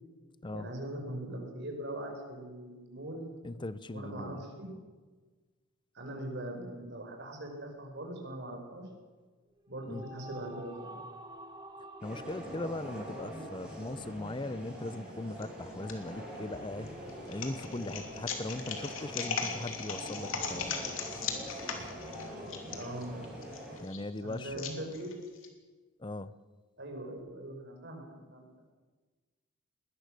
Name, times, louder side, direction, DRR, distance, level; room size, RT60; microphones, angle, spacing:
voice 1, 0.5-3.3 3.9-4.8 5.9-8.9 9.7-11.0 22.7-23.1 24.2-25.2 26.8-28.7, right 1 dB, 55° right, 2 dB, 5.2 m, -41 dB
voice 2, 3.4-4.4 9.9-10.0 12.0-16.9 17.3-20.8 23.8-24.7 26.0-26.3, left 2 dB, 20° left, 16 dB, 0.6 m, -39 dB
sound 1, 9.5-15.0, right 2 dB, 20° right, 1.7 m, -50 dB
sound 2, 12.0-23.8, equal, 5° right, 7.5 m, -44 dB
sound 3, 15.4-15.9 16.5-25.5, left 6 dB, 70° left, 3.0 m, -38 dB
21.0 x 19.0 x 6.6 m, 1.4 s
head